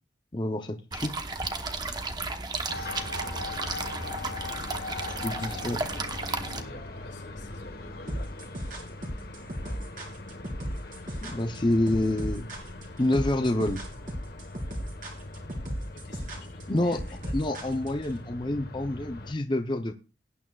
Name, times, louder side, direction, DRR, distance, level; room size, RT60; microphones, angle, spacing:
voice 1, 0.3-1.2 5.2-5.8 11.2-12.5 13.0-13.8 16.7-17.0 17.3-19.9, left 1 dB, 25° left, 6 dB, 0.7 m, -27 dB
sound 1, 0.9-6.6, right 3 dB, 20° right, 1.0 m, -34 dB
sound 2, 2.7-19.3, left 2 dB, 55° left, 1.3 m, -41 dB
voice 2, 5.0-8.5 15.9-17.4, left 2 dB, 90° left, -1 dB, 3.8 m, -49 dB
sound 3, 8.1-18.1, equal, 45° right, 3.0 m, -35 dB
18.0 x 8.9 x 2.4 m, 0.33 s
head